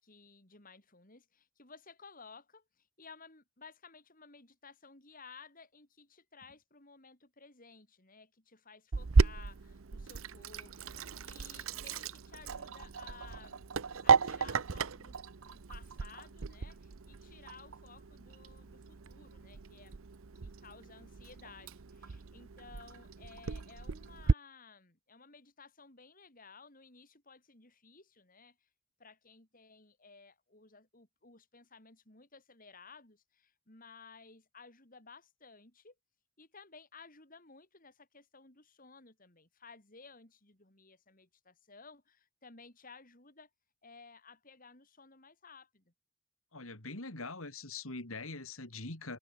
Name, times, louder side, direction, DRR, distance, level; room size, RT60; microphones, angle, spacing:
voice 1, 0.0-13.7 14.0-19.9 20.3-28.7 29.0-35.9 36.4-43.5 43.8-45.9, left 4 dB, 40° left, 4.2 m, -56 dB
Sink (filling or washing), 8.9-24.3, right 4 dB, 70° right, 0.7 m, -34 dB
voice 2, 46.5-49.2, left 3 dB, 75° left, 3.8 m, -43 dB
head